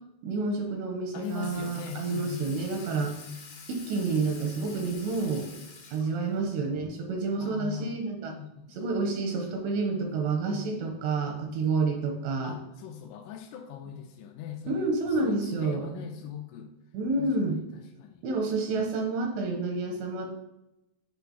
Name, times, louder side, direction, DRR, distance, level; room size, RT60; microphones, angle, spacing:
voice 1, 0.2-3.1 3.7-5.5 5.9-8.3 8.7-12.5 14.7-16.0 16.9-17.6 18.2-20.3, right 3 dB, 85° right, 2 dB, 2.6 m, -29 dB
voice 2, 1.1-2.6 2.9-3.1 6.0-6.2 7.4-8.0 8.3-8.8 12.4-15.0 15.2-16.7 17.2-18.3, left 9 dB, 85° left, 3 dB, 2.8 m, -40 dB
Water tap faucet / Sink (filling or washing), 1.2-6.4, left 4 dB, 55° left, 2.4 m, -48 dB
9.2 x 4.2 x 2.7 m, 0.92 s
omnidirectional pair, 5.2 m